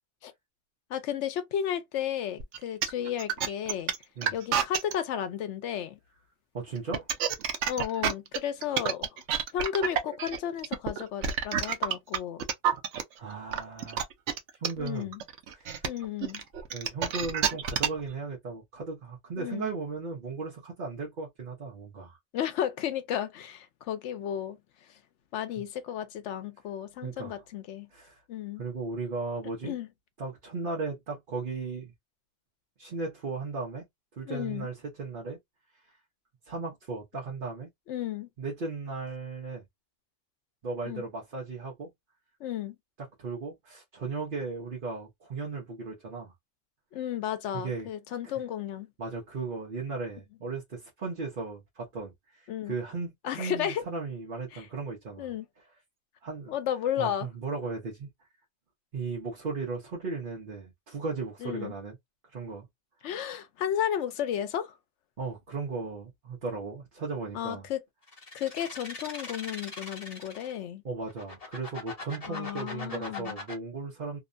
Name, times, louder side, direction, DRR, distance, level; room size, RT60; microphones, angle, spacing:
voice 1, 0.9-3.9 4.3-6.0 7.7-9.1 9.5-12.4 14.8-15.2 15.8-16.4 19.4-19.7 22.3-24.6 25.3-27.9 28.3-28.6 29.6-29.9 34.2-34.7 37.9-38.3 40.9-41.1 42.4-42.8 46.9-48.9 52.5-52.7 53.2-53.8 54.5-54.7 55.2-55.5 56.5-57.3 61.4-61.7 63.0-64.7 67.3-67.8 68.3-70.8 72.3-73.4, left 10 dB, 85° left, 0.9 m, -33 dB
sound 1, 2.4-4.9 6.8-13.0 13.5-18.1, right 8 dB, 80° right, 0.9 m, -28 dB
voice 2, 6.5-7.1 13.2-14.0 14.6-15.1 15.5-15.9 16.7-22.2 27.0-27.4 27.9-28.2 28.6-29.8 30.2-31.9 32.8-33.9 34.2-35.4 36.5-37.7 38.4-39.6 40.6-41.9 43.2-46.3 47.5-47.9 48.2-48.3 49.0-55.3 56.2-56.5 57.0-58.1 58.9-62.0 62.3-62.7 65.2-67.7 70.8-74.2, right 4 dB, 50° right, 1.0 m, -36 dB
sound 2, 68.1-70.6 71.1-73.5, left 3 dB, 35° left, 1.0 m, -40 dB
2.8 x 2.1 x 2.5 m
omnidirectional pair, 1.2 m